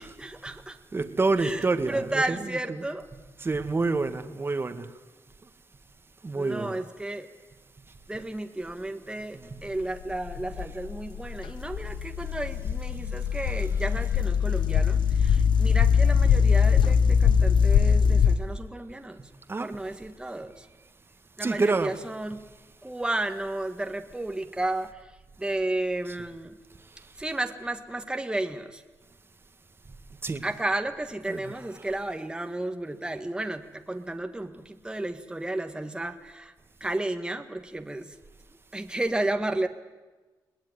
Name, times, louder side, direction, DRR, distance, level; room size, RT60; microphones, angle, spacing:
voice 1, 0.0-0.8 1.4-3.1 6.3-7.3 8.1-19.2 19.6-20.7 21.4-22.4 22.8-26.6 27.2-28.8 30.4-36.5 36.8-38.1 38.7-39.7, right 1 dB, 10° right, 6 dB, 1.5 m, -33 dB
voice 2, 0.9-2.2 3.4-4.9 6.2-6.7 19.5-19.7 21.4-21.9 30.2-30.4 31.3-31.4, right 3 dB, 30° right, 9 dB, 1.7 m, -27 dB
sound 1, 9.8-18.4, left 6 dB, 80° left, 1.1 m, -22 dB
21.5 x 19.0 x 9.6 m, 1.2 s
cardioid pair, 90°, 8 cm